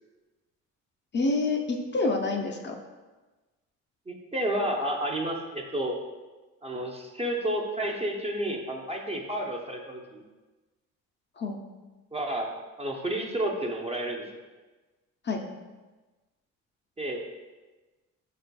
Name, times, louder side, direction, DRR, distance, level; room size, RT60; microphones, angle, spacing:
voice 1, 1.1-2.8 11.4-11.6 15.3-15.4, left 3 dB, 35° left, 2 dB, 0.5 m, -27 dB
voice 2, 4.1-6.0 6.6-10.2 12.1-14.4 17.0-17.2, right 1 dB, 20° right, 1 dB, 0.5 m, -31 dB
4.3 x 4.0 x 2.2 m, 1.2 s
cardioid pair, 90°, 30 cm